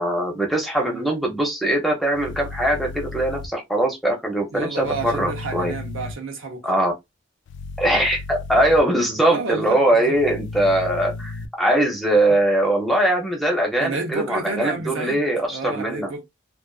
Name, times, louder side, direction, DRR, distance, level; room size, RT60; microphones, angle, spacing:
voice 1, 0.0-5.7 6.6-6.9 7.8-16.1, right 1 dB, ahead, 0.6 m, -21 dB
sound 1, 2.1-3.5 4.8-6.1 7.5-8.8 10.1-11.5, left 3 dB, 60° left, 0.3 m, -34 dB
voice 2, 4.5-6.7 9.2-10.2 13.8-15.2 15.5-16.2, right 3 dB, 80° right, 0.7 m, -30 dB
2.4 x 2.4 x 2.3 m
head